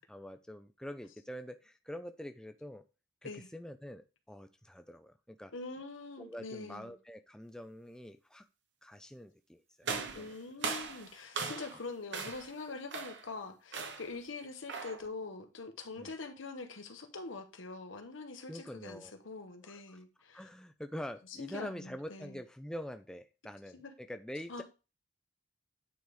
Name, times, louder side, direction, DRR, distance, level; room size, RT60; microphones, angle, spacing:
voice 1, 0.0-2.8 3.2-5.5 6.2-8.5 8.8-10.4 16.0-16.1 18.5-19.1 19.6-20.0 20.3-24.6, equal, 5° left, 0.4 m, -45 dB
voice 2, 5.5-6.9 10.1-20.5 21.4-22.4 23.7-23.9 24.5-24.6, left 3 dB, 75° left, 1.2 m, -44 dB
sound 1, 9.8-11.8 12.1-12.5 12.9-13.3 13.7-14.2 14.7-15.1, right 4 dB, 60° right, 1.0 m, -39 dB
9.2 x 3.5 x 4.8 m
head